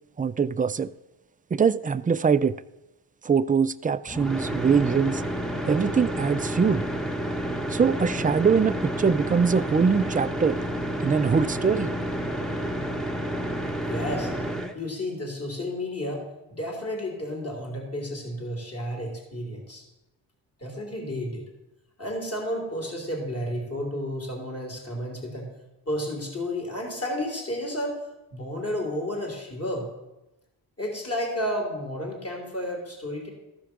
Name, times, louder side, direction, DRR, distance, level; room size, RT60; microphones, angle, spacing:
voice 1, 0.2-0.9 1.5-2.6 3.2-5.2 5.7-6.8 7.7-10.6 11.0-11.9, right 6 dB, 20° right, 0.3 m, -23 dB
sound 1, 4.1-14.7, equal, ahead, 1.0 m, -30 dB
voice 2, 13.9-14.3 14.7-19.8 20.6-21.4 22.0-25.5 25.9-28.0 28.3-29.9 30.8-33.3, left 1 dB, 35° left, 3.2 m, -32 dB
14.0 x 5.0 x 6.0 m
cardioid pair, 70°, 43 cm